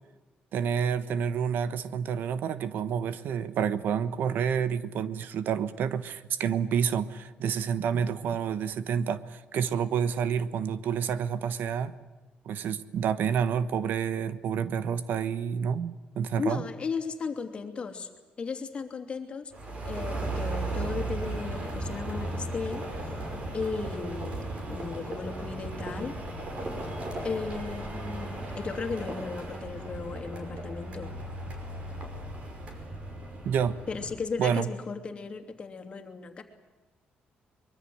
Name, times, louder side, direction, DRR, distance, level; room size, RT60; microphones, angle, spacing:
voice 1, 0.5-11.9 12.4-16.6 33.4-33.8 34.4-34.7, right 7 dB, 70° right, 14 dB, 1.2 m, -29 dB
voice 2, 16.4-18.1 18.4-19.5 19.8-22.8 23.5-26.1 27.2-31.1 33.9-36.4, left 5 dB, 30° left, 6 dB, 2.9 m, -35 dB
sound 1, 19.5-34.2, right 2 dB, 40° right, 5.5 m, -36 dB
24.5 x 22.5 x 8.0 m, 1.2 s
cardioid pair, 155°, 3 cm